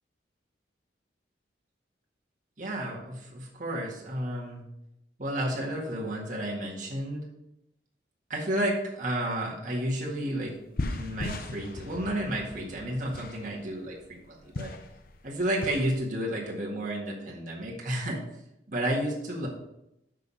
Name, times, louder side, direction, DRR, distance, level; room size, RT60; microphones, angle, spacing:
voice 1, 2.6-4.6 5.2-7.2 8.3-10.5 10.9-13.9 14.3-14.7 15.2-18.2 18.7-19.5, right 1 dB, 45° right, -3 dB, 1.8 m, -31 dB
sound 1, 10.1-10.2 10.5-16.0, left 2 dB, 50° left, 0.7 m, -38 dB
6.6 x 5.9 x 5.5 m, 0.84 s
head